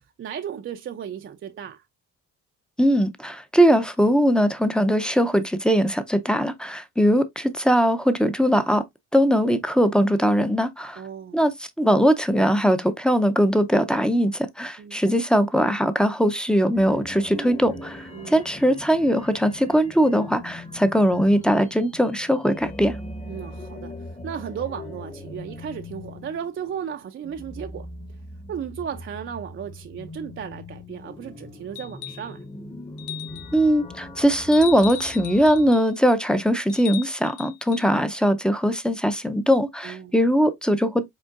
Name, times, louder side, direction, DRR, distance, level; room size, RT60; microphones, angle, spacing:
voice 1, 0.2-1.8 11.0-11.4 14.8-15.0 18.1-18.4 23.3-23.9 24.2-27.9 28.5-32.4 39.8-40.1, right 8 dB, 45° right, 0.5 m, -35 dB
voice 2, 2.8-8.8 9.1-11.0 11.3-11.5 11.8-23.0 33.5-41.1, equal, 5° left, 0.6 m, -20 dB
sound 1, 16.7-35.8, left 1 dB, 20° left, 1.0 m, -40 dB
sound 2, 31.8-32.3 33.0-33.6 34.5-35.9 36.7-37.9 39.5-39.6, left 12 dB, 85° left, 0.7 m, -37 dB
5.3 x 3.6 x 2.4 m
cardioid pair, 90°, 30 cm